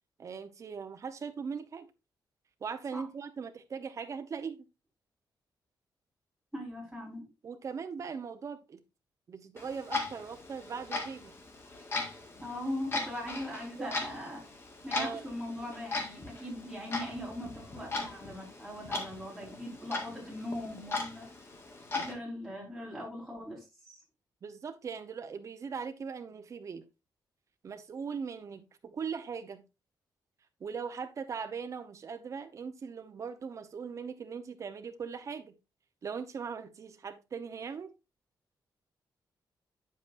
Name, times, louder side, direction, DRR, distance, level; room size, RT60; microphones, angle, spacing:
voice 1, 0.2-1.9 2.6-4.7 7.4-8.8 9.3-11.3 13.8-13.9 14.9-15.2 24.4-26.8 27.6-29.7 30.6-35.6 36.0-37.9, right 6 dB, 40° right, 0.9 m, -40 dB
voice 2, 6.5-7.3 12.4-14.4 14.8-21.2 21.9-24.0, left 1 dB, ahead, 4.8 m, -40 dB
Clock, 9.6-22.1, left 3 dB, 30° left, 1.8 m, -39 dB
8.9 x 7.6 x 2.6 m
wide cardioid pair, 165°, 8 cm